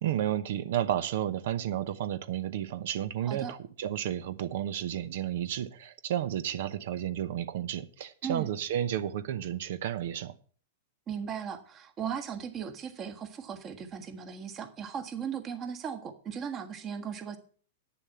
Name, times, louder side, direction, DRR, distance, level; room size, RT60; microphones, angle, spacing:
voice 1, 0.0-10.3, right 11 dB, 65° right, 0.8 m, -32 dB
voice 2, 3.2-3.5 8.2-8.5 11.1-17.4, right 7 dB, 30° right, 1.5 m, -37 dB
9.6 x 7.0 x 6.9 m
hypercardioid pair, 120°, 0 cm